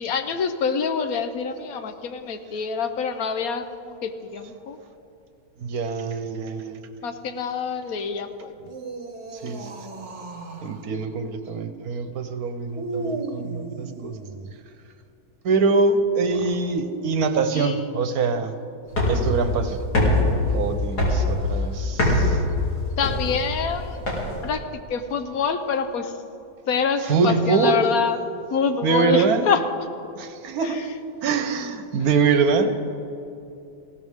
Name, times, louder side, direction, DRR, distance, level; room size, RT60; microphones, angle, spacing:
voice 1, 0.0-4.8 7.0-8.5 17.5-17.9 23.0-24.0 24.4-24.6 24.9-26.1 26.7-28.2 28.5-29.6 30.6-30.8, left 6 dB, 70° left, 8 dB, 1.3 m, -26 dB
voice 2, 5.6-6.8 9.3-9.9 10.6-14.2 15.4-18.6 19.1-19.8 20.5-22.5 27.0-27.9 28.8-29.5 30.2-30.8 31.2-32.7, right 4 dB, 70° right, 8 dB, 1.4 m, -24 dB
sound 1, 8.6-10.9 12.7-14.5 16.1-16.7, right 2 dB, 50° right, 1.6 m, -35 dB
sound 2, 18.9-24.6, left 1 dB, 85° left, 3.7 m, -23 dB
19.0 x 16.0 x 3.6 m, 2.8 s
omnidirectional pair, 1.6 m